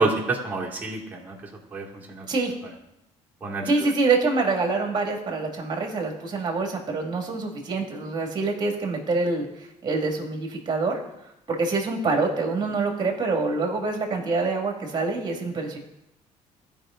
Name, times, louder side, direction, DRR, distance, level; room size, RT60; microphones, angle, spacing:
voice 1, 0.0-1.4 1.7-2.3 3.4-3.7, right 3 dB, 15° right, -4 dB, 2.7 m, -27 dB
voice 2, 3.6-11.0 11.5-15.8, right 3 dB, 35° right, 2 dB, 2.2 m, -26 dB
14.5 x 5.2 x 3.8 m, 0.85 s
cardioid pair, 105°, 13 cm